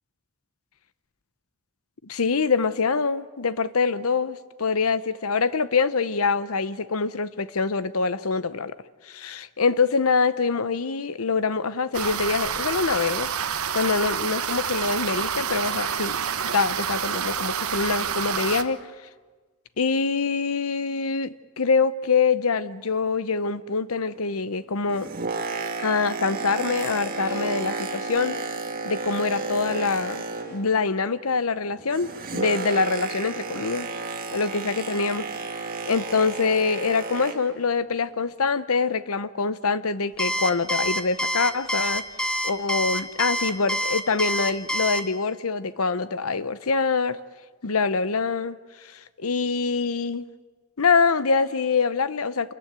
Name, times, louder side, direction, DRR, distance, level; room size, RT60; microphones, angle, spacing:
voice 1, 2.0-8.8 9.1-13.3 13.7-16.2 16.4-18.8 19.8-25.1 25.8-28.4 28.8-33.9 34.3-35.3 35.8-42.0 42.4-47.2 47.6-48.6 49.2-50.3 50.8-52.5, left 4 dB, 80° left, 15 dB, 0.8 m, -25 dB
sound 1, 11.9-18.6, right 7 dB, 80° right, 1.1 m, -28 dB
Boat Water vehicle, 24.7-30.8 31.1-37.6 38.2-38.3, right 3 dB, 40° right, 1.9 m, -32 dB
Alarm, 40.2-45.0, equal, 5° left, 0.9 m, -26 dB
28.0 x 14.5 x 9.4 m, 1.4 s
head